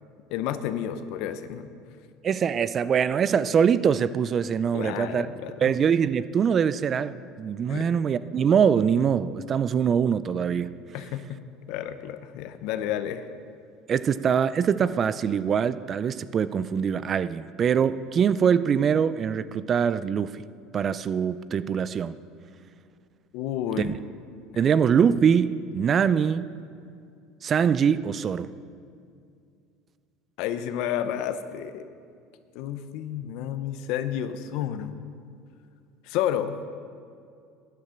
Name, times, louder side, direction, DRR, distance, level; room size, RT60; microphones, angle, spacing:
voice 1, 0.3-1.7 4.7-5.7 7.7-7.9 10.9-11.4 11.7-13.2 23.3-23.9 24.5-24.7 30.4-31.9 32.5-35.0 36.0-36.6, left 10 dB, 65° left, 0.8 m, -31 dB
voice 2, 2.2-5.3 5.6-10.8 13.9-20.4 20.7-22.2 23.8-23.9 24.6-26.5 27.4-28.5, right 7 dB, 35° right, 0.4 m, -23 dB
12.5 x 11.0 x 5.8 m
supercardioid pair, 125°, 0 cm